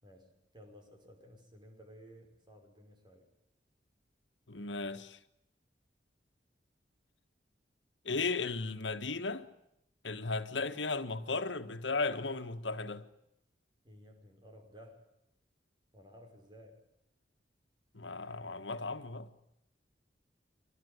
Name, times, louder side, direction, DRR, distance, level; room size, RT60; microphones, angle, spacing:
voice 1, 0.0-3.3 13.8-15.1 15.9-16.8, equal, 25° right, 5.5 m, -56 dB
voice 2, 4.5-5.2 8.0-9.5 10.0-13.1 17.9-19.3, left 3 dB, 90° left, 1.7 m, -35 dB
26.0 x 19.5 x 9.8 m
head